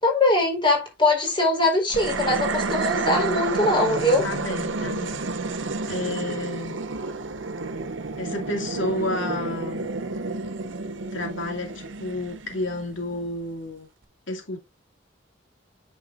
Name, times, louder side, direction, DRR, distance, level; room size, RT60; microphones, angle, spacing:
voice 1, 0.0-4.3, left 2 dB, 25° left, 4.2 m, -22 dB
sound 1, 1.9-13.3, right 3 dB, 80° right, 1.1 m, -30 dB
voice 2, 4.2-5.2 5.9-6.8 8.2-9.9 11.1-13.9 14.3-14.6, left 2 dB, 85° left, 2.4 m, -31 dB
9.0 x 7.1 x 2.6 m
head